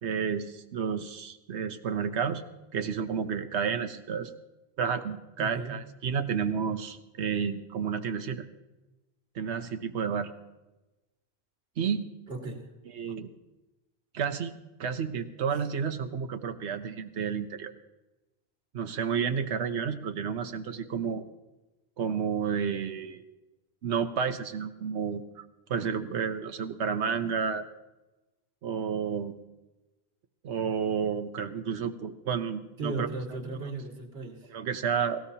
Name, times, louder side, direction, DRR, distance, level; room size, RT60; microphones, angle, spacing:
voice 1, 0.0-2.4 2.7-4.3 4.8-8.4 9.3-10.3 11.8-12.1 12.9-13.3 14.1-14.5 14.8-17.7 18.7-21.2 22.0-23.2 23.8-27.6 28.6-29.4 30.4-33.1 34.5-35.2, right 6 dB, 85° right, 8 dB, 1.1 m, -31 dB
voice 2, 5.4-5.8 12.3-12.7 32.8-34.5, right 3 dB, 65° right, 1 dB, 2.1 m, -36 dB
18.5 x 16.5 x 2.8 m, 1.1 s
omnidirectional pair, 1.1 m